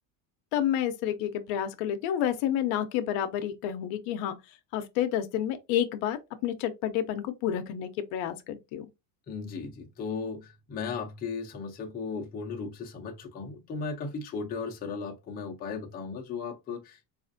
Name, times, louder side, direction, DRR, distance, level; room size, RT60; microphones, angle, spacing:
voice 1, 0.5-4.4 4.7-8.9, left 10 dB, 60° left, 0.7 m, -30 dB
voice 2, 9.3-17.0, left 5 dB, 20° left, 0.6 m, -36 dB
4.1 x 2.5 x 2.6 m
cardioid pair, 145°, 50 cm